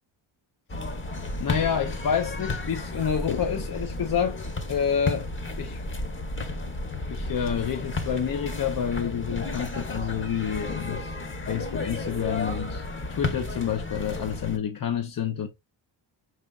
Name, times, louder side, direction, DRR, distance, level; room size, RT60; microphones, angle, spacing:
sound 1, 0.7-14.6, left 2 dB, 25° left, 1.0 m, -33 dB
voice 1, 1.4-4.4 4.7-5.3 5.6-5.8 7.1-11.1 11.4-12.8 13.1-15.5, left 8 dB, 45° left, 0.7 m, -28 dB
5.0 x 4.0 x 2.3 m
cardioid pair, 80°, 48 cm